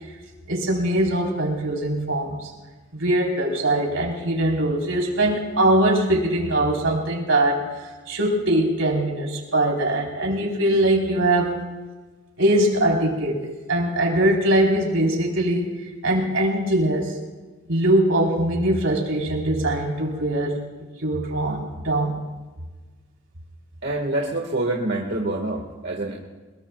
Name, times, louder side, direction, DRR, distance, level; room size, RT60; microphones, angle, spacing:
voice 1, 0.5-2.5 2.9-7.6 8.1-11.6 12.4-13.4 13.7-15.7 16.0-17.1 17.7-20.6 21.0-22.2, right 1 dB, 80° right, -1 dB, 4.0 m, -21 dB
voice 2, 23.8-26.1, right 2 dB, 55° right, -2 dB, 1.8 m, -26 dB
23.0 x 22.0 x 2.4 m, 1.3 s
head